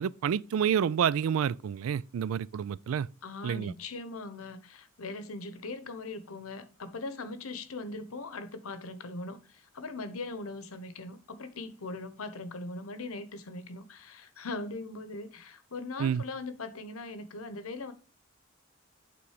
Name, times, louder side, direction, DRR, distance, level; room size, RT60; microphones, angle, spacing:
voice 1, 0.0-3.1 3.4-3.7 16.0-16.2, right 8 dB, 75° right, 0.3 m, -29 dB
voice 2, 3.2-17.9, left 3 dB, 90° left, 0.9 m, -40 dB
8.5 x 3.9 x 4.9 m
head